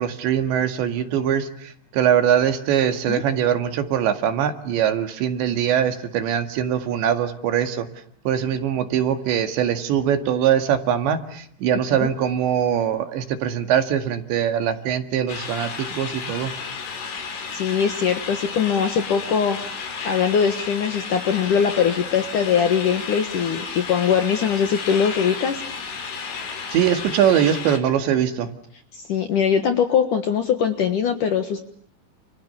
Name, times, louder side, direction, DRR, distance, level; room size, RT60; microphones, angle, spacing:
voice 1, 0.0-7.9 8.3-16.5 26.7-28.5, right 9 dB, 70° right, 8 dB, 4.1 m, -22 dB
sound 1, 15.3-27.8, left 5 dB, 80° left, 6.7 m, -33 dB
voice 2, 17.5-25.6 28.9-31.6, left 7 dB, 60° left, 8 dB, 2.3 m, -22 dB
29.5 x 29.5 x 6.9 m, 0.62 s
omnidirectional pair, 5.5 m